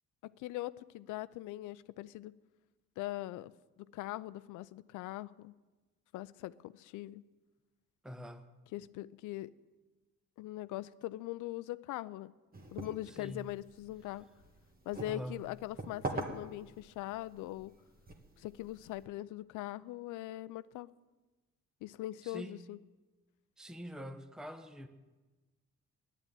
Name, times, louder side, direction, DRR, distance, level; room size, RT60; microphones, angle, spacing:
voice 1, 0.2-2.3 3.0-3.5 3.8-5.5 6.1-7.2 8.7-9.5 10.4-12.3 12.7-14.3 14.9-17.7 18.4-20.9 21.8-22.8, left 16 dB, 90° left, 17 dB, 0.5 m, -41 dB
voice 2, 8.0-8.5 13.1-13.5 15.1-15.4 22.2-22.7 23.6-24.9, equal, ahead, 8 dB, 0.8 m, -45 dB
sound 1, 12.5-19.1, right 2 dB, 30° right, 1.5 m, -45 dB
9.7 x 9.1 x 8.9 m, 1.2 s
cardioid pair, 90°, 30 cm